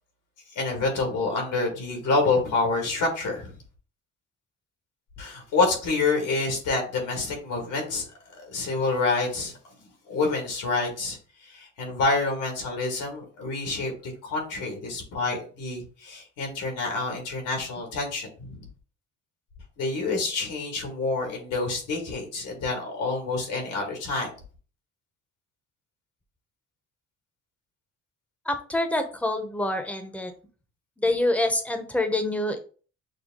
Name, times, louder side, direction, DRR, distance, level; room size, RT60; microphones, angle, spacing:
voice 1, 0.6-3.6 5.2-8.0 8.4-9.5 9.8-18.7 19.8-24.3, left 3 dB, 85° left, 2.1 m, -27 dB
voice 2, 28.5-30.3 31.0-32.6, left 1 dB, 5° left, 0.9 m, -26 dB
6.4 x 2.2 x 3.7 m
cardioid pair, 90°, 30 cm